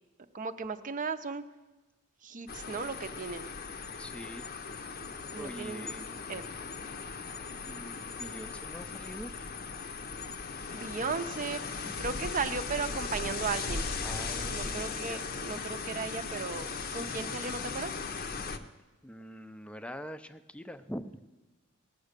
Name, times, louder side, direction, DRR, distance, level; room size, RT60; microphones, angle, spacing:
voice 1, 0.3-1.4 2.2-3.5 5.3-5.9 6.3-6.5 10.7-11.6 12.0-13.9 14.5-17.9, right 5 dB, 40° right, 10 dB, 0.6 m, -36 dB
sound 1, 2.5-18.6, left 4 dB, 45° left, 0.7 m, -38 dB
voice 2, 4.0-4.5 5.4-6.1 7.7-9.3 11.8-12.0 14.0-15.4 19.0-21.3, equal, 5° left, 11 dB, 0.5 m, -44 dB
18.0 x 7.2 x 6.6 m, 1.2 s
head